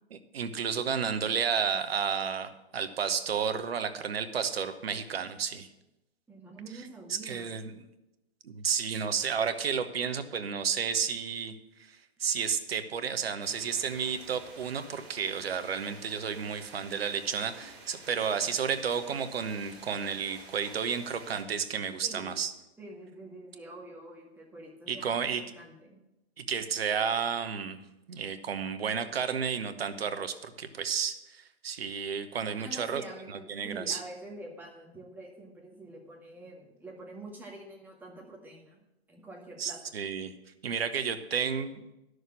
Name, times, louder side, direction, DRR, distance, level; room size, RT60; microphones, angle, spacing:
voice 1, 0.1-5.7 7.1-7.9 8.4-11.5 11.9-22.5 24.9-25.4 26.4-27.8 28.1-33.0 33.3-34.0 39.6-40.3 40.6-41.9, right 6 dB, 70° right, 11 dB, 1.0 m, -32 dB
voice 2, 6.3-7.8 22.0-22.3 22.8-26.0 32.6-38.8 39.1-39.8, right 2 dB, 5° right, -2 dB, 1.9 m, -46 dB
sound 1, 13.4-21.4, right 3 dB, 40° right, 3.1 m, -51 dB
11.0 x 6.5 x 6.2 m, 0.95 s
figure-of-eight pair, 115°, 31 cm